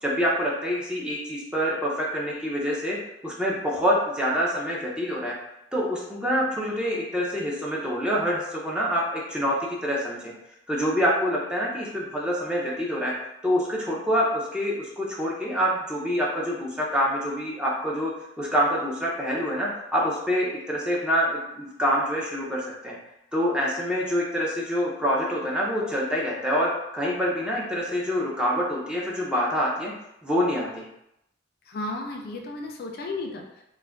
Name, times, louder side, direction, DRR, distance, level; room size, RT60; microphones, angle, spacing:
voice 1, 0.0-3.0 3.2-5.3 5.7-10.3 10.7-13.1 13.4-18.1 18.4-23.0 23.3-29.9 30.2-30.9, equal, 5° right, -5 dB, 0.5 m, -26 dB
voice 2, 31.6-33.6, left 2 dB, 55° left, 2 dB, 0.4 m, -34 dB
2.4 x 2.2 x 3.3 m, 0.85 s
head